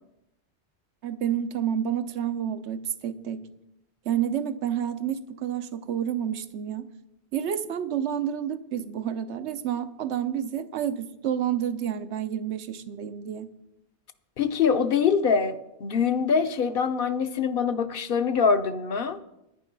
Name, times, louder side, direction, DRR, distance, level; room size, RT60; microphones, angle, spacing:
voice 1, 1.0-3.4 4.1-6.9 7.3-13.5, right 9 dB, 90° right, 11 dB, 1.0 m, -29 dB
voice 2, 14.4-19.2, left 6 dB, 60° left, 10 dB, 0.8 m, -24 dB
10.0 x 9.9 x 5.3 m, 0.87 s
omnidirectional pair, 1.1 m